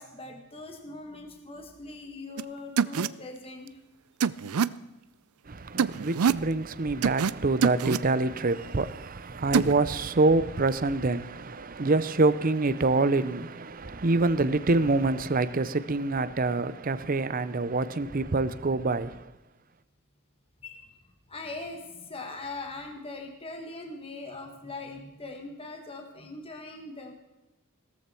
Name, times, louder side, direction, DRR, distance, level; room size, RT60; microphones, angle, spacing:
voice 1, 0.0-3.8 20.6-21.0 21.3-27.1, left 3 dB, 25° left, 1.8 m, -41 dB
sound 1, 2.4-2.5 2.8-3.1 4.2-4.7 5.8-6.4 7.0-7.3 7.6-8.0 9.5-9.7, right 6 dB, 85° right, 0.5 m, -24 dB
voice 2, 5.5-19.2, right 3 dB, 40° right, 0.7 m, -26 dB
17.0 x 14.0 x 4.5 m
head